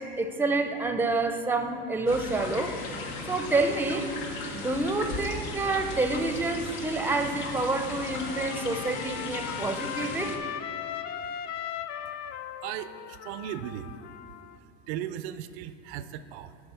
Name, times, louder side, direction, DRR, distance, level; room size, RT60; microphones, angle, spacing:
voice 1, 0.0-2.8 3.3-4.1 4.5-10.4, right 3 dB, 5° right, 8 dB, 0.5 m, -28 dB
sound 1, 2.1-10.4, left 3 dB, 90° left, 1.2 m, -37 dB
Trumpet, 7.9-14.6, left 9 dB, 55° left, 0.5 m, -38 dB
voice 2, 12.3-14.0 14.9-16.6, right 11 dB, 85° right, 12 dB, 0.5 m, -37 dB
8.1 x 5.3 x 6.8 m, 3.0 s
supercardioid pair, 105°, 32 cm